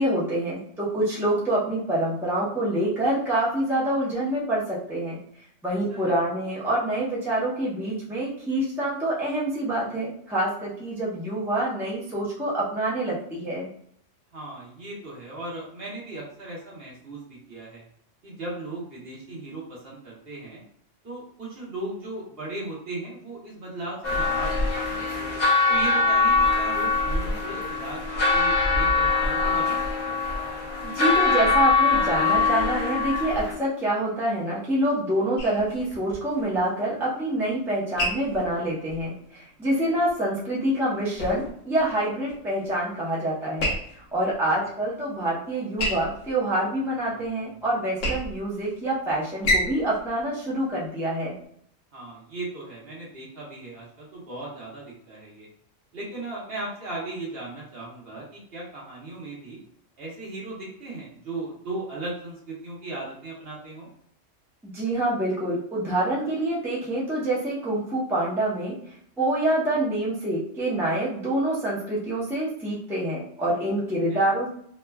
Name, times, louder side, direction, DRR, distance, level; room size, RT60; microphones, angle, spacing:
voice 1, 0.0-5.2 5.6-13.7 30.8-51.4 64.6-68.7 69.2-74.5, right 1 dB, 5° right, -7 dB, 0.5 m, -26 dB
voice 2, 5.7-6.2 14.3-17.8 18.2-20.6 21.0-24.7 25.0-25.2 25.7-30.2 51.9-55.5 55.9-59.6 60.0-63.9 74.1-74.3, right 2 dB, 50° right, -5 dB, 1.1 m, -37 dB
sound 1, 24.0-33.5, left 3 dB, 40° left, 0.7 m, -23 dB
sound 2, 35.4-51.4, left 1 dB, 65° left, 1.1 m, -34 dB
3.0 x 2.2 x 2.2 m, 0.67 s
omnidirectional pair, 1.3 m